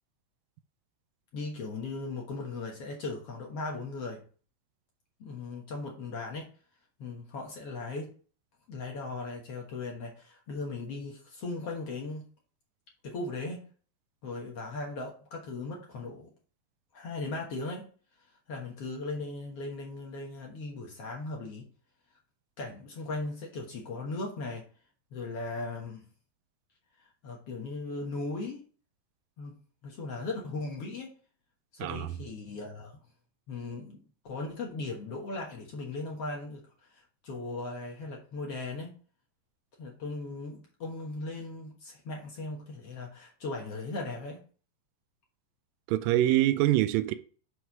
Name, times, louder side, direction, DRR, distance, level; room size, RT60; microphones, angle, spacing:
voice 1, 1.3-4.2 5.2-6.5 7.0-8.1 8.7-12.3 13.0-13.6 14.2-16.3 16.9-17.8 18.5-21.7 22.6-24.6 25.1-26.0 27.2-28.6 29.4-29.6 29.8-31.1 31.7-32.9 33.5-36.6 36.9-39.0 39.8-44.4, left 3 dB, 55° left, 1.7 m, -38 dB
voice 2, 31.8-32.1 45.9-47.1, right 14 dB, 85° right, 2.1 m, -25 dB
6.4 x 4.8 x 5.9 m
omnidirectional pair, 4.4 m